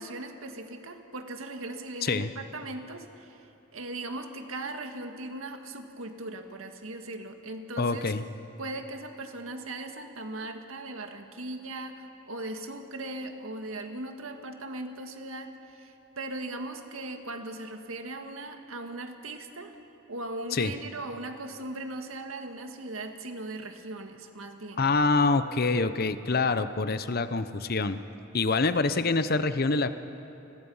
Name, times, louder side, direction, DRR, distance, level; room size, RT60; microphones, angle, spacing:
voice 1, 0.0-8.1 8.6-19.8 20.1-24.8, right 2 dB, 90° right, 5 dB, 1.9 m, -39 dB
voice 2, 7.8-8.2 20.5-20.7 24.8-28.0 28.3-29.9, left 3 dB, 50° left, 12 dB, 0.8 m, -26 dB
29.0 x 21.0 x 5.6 m, 2.8 s
head